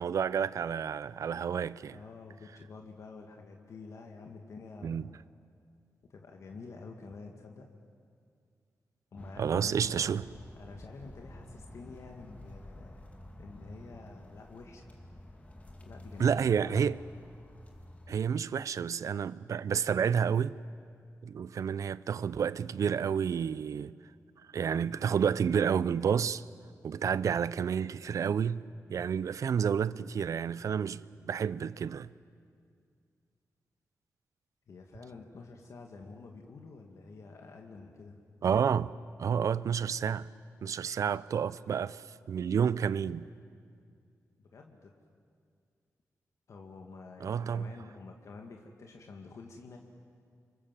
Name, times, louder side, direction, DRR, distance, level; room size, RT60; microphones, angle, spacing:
voice 1, 0.0-2.0 4.8-5.0 9.4-10.2 16.2-17.0 18.1-20.6 21.2-23.9 24.5-26.4 26.8-28.6 28.9-32.1 38.4-40.3 40.6-43.3 47.2-47.7, right 7 dB, 65° right, 0.6 m, -30 dB
voice 2, 1.9-5.1 6.1-7.7 9.1-9.9 10.6-13.0 13.4-14.9 15.8-16.8 34.7-38.2 44.4-45.0 46.5-49.8, left 4 dB, 55° left, 2.1 m, -48 dB
sound 1, 9.1-18.2, left 1 dB, 25° left, 2.4 m, -50 dB
29.5 x 25.0 x 7.5 m
wide cardioid pair, 170°, 6 cm